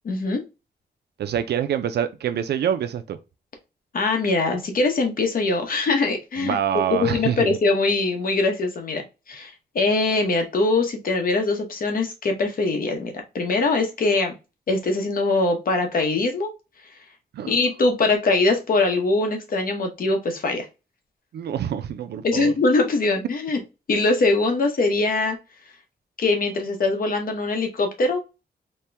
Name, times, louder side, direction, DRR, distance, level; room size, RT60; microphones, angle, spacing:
voice 1, 0.0-0.4 3.9-6.6 7.0-9.0 9.3-14.3 14.7-16.5 17.5-20.7 22.2-23.6 23.9-25.4 26.2-28.2, left 3 dB, 55° left, 0.9 m, -22 dB
voice 2, 1.2-3.2 6.4-7.5 17.3-17.5 21.3-22.5, right 9 dB, 80° right, 0.4 m, -26 dB
4.3 x 2.2 x 3.3 m
wide cardioid pair, 170°, 17 cm